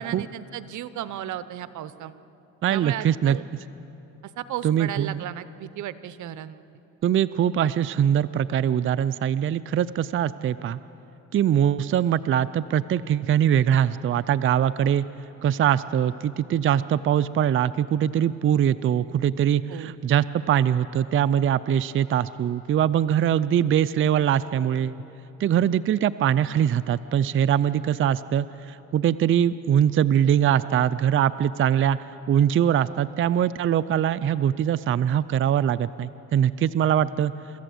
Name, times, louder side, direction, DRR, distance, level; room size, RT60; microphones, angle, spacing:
voice 1, 0.0-2.2 2.7-3.4 4.4-6.6 19.7-19.9, right 12 dB, 75° right, 14 dB, 0.8 m, -35 dB
voice 2, 2.6-3.4 4.6-5.2 7.0-10.8 11.3-15.1 15.4-25.0 25.4-37.3, right 9 dB, 45° right, 14 dB, 0.4 m, -22 dB
26.0 x 14.0 x 7.8 m, 3.0 s
cardioid pair, 90°, 30 cm